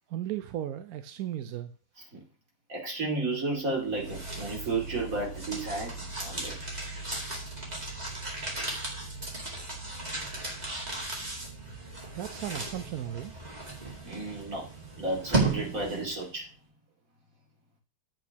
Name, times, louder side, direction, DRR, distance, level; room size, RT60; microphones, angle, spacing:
voice 1, 0.1-1.7 12.1-13.4, right 11 dB, 65° right, 9 dB, 1.0 m, -35 dB
voice 2, 2.7-6.6 14.0-14.7 15.0-16.5, right 3 dB, 45° right, -2 dB, 3.1 m, -33 dB
sound 1, 3.7-16.2, right 3 dB, 20° right, 2.4 m, -35 dB
10.5 x 8.2 x 2.9 m, 0.35 s
omnidirectional pair, 2.0 m